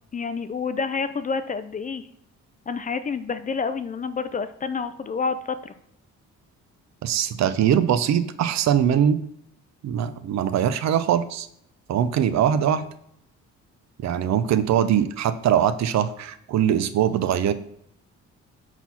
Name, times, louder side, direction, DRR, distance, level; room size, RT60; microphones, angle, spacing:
voice 1, 0.1-2.1 2.7-5.7, left 5 dB, 30° left, 12 dB, 0.3 m, -28 dB
voice 2, 7.0-9.2 9.8-11.5 11.9-12.9 14.0-17.5, right 9 dB, 65° right, 13 dB, 0.5 m, -22 dB
4.4 x 4.1 x 5.5 m, 0.73 s
cardioid pair, 90°, 30 cm